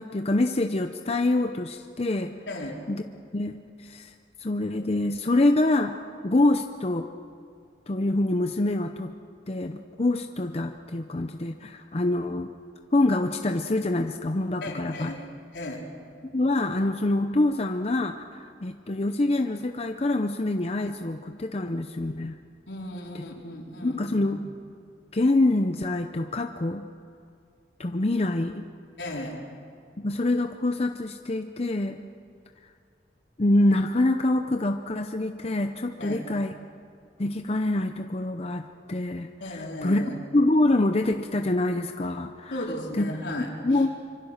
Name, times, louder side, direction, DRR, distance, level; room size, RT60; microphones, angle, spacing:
voice 1, 0.0-2.3 2.9-3.0 3.3-4.1 4.4-6.0 6.2-7.1 7.9-9.1 9.5-12.5 12.9-15.1 16.3-22.3 23.1-23.2 23.8-24.4 25.1-26.8 27.8-28.6 30.0-32.0 33.4-36.5 37.2-40.0 40.3-42.6 43.0-43.1 43.4-43.9, left 2 dB, 35° left, 6 dB, 0.7 m, -25 dB
voice 2, 2.5-2.8 14.6-15.3 15.5-15.8 22.7-24.3 29.0-29.4 36.0-36.2 39.4-40.1 42.5-43.5, left 1 dB, 80° left, -1 dB, 4.4 m, -35 dB
25.5 x 24.0 x 6.6 m, 2.3 s
head